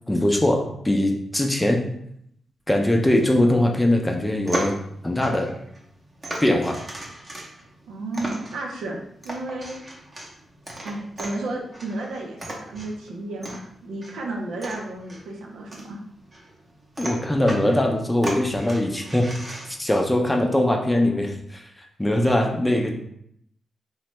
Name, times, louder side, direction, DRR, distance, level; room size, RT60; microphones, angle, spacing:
voice 1, 0.1-1.8 2.7-4.7 5.0-5.5 6.4-6.8 17.0-19.3 19.8-21.6 22.0-23.0, left 1 dB, 15° left, 2 dB, 0.5 m, -21 dB
sound 1, 4.2-19.9, right 1 dB, 35° right, 0.8 m, -37 dB
voice 2, 7.9-9.0 9.2-9.8 10.8-16.0, right 2 dB, 90° right, 0 dB, 0.5 m, -32 dB
3.1 x 2.2 x 2.9 m, 0.72 s
cardioid pair, 55°, 0 cm